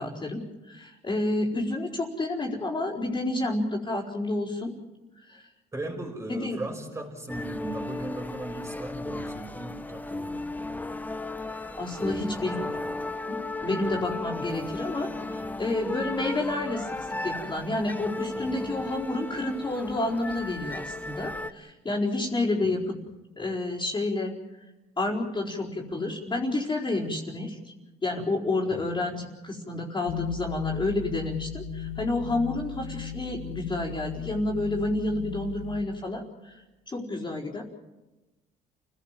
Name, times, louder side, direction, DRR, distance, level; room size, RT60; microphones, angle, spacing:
voice 1, 0.0-4.7 5.2-5.5 6.3-6.6 11.8-12.5 13.3-22.9 23.4-24.3 25.0-27.7 28.0-36.6 36.9-37.6, left 2 dB, 25° left, -7 dB, 4.4 m, -30 dB
voice 2, 5.7-10.4 12.3-12.9 22.6-22.9 28.7-29.1, right 2 dB, 15° right, 4 dB, 5.6 m, -38 dB
sound 1, 7.3-21.5, left 2 dB, 10° left, 1.1 m, -35 dB
sound 2, 30.1-35.8, left 7 dB, 60° left, 2.6 m, -36 dB
29.0 x 17.5 x 7.5 m, 1.1 s
cardioid pair, 110°, 17 cm